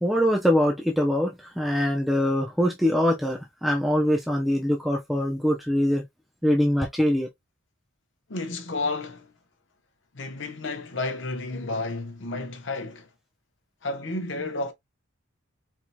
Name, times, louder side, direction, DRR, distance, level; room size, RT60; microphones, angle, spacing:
voice 1, 0.0-6.0 6.4-7.3, equal, ahead, 0.5 m, -23 dB
voice 2, 8.3-9.3 10.1-13.1 13.8-14.7, left 2 dB, 60° left, 0.9 m, -31 dB
4.5 x 2.7 x 2.2 m
head